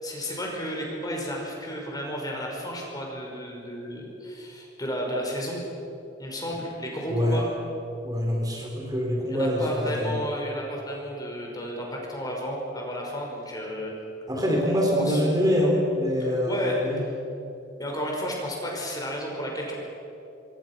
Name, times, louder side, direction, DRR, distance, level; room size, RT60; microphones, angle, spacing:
voice 1, 0.0-5.6 6.2-7.5 9.3-13.9 14.7-15.2 16.2-17.1 17.8-19.7, equal, 20° left, -1 dB, 5.4 m, -32 dB
voice 2, 7.1-7.4 8.0-10.1 14.3-17.0, equal, 20° right, -1 dB, 3.9 m, -24 dB
26.0 x 25.0 x 6.1 m, 2.9 s
head